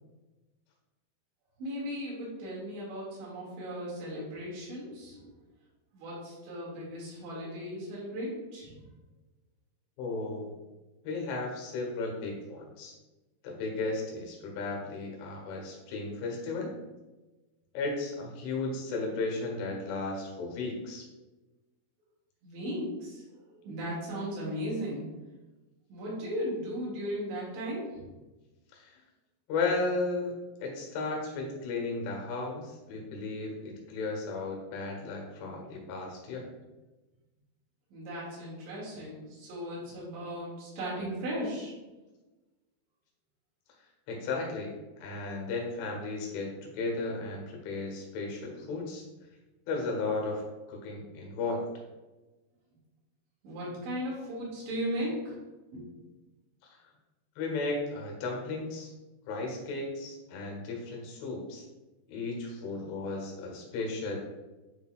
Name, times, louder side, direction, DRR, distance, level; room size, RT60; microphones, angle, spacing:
voice 1, 1.6-5.2 5.9-8.7 22.4-23.2 23.6-25.0 25.9-28.1 37.9-41.7 53.4-55.4 55.7-55.9, equal, 80° right, -6 dB, 4.5 m, -36 dB
voice 2, 10.0-10.5 11.0-13.0 13.4-16.7 17.8-21.1 28.7-29.0 29.5-30.3 30.6-36.5 44.1-44.7 45.0-49.0 49.7-50.4 50.7-51.6 56.6-56.8 57.4-58.9 59.3-61.7 62.1-64.2, left 3 dB, 90° left, 0 dB, 3.7 m, -34 dB
9.1 x 4.4 x 2.4 m, 1.1 s
omnidirectional pair, 5.4 m